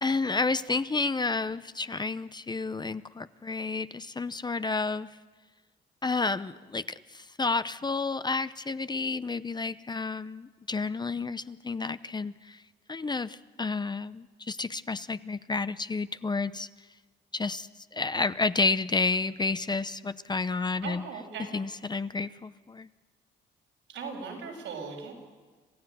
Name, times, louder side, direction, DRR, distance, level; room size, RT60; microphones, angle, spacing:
voice 1, 0.0-5.1 6.0-12.6 12.9-16.7 17.3-21.0 21.5-22.9, left 3 dB, 20° left, 14 dB, 0.7 m, -30 dB
voice 2, 20.8-21.5 23.9-25.1, right 5 dB, 85° right, 0 dB, 7.1 m, -38 dB
26.5 x 15.0 x 9.3 m, 1.4 s
cardioid pair, 90°, 20 cm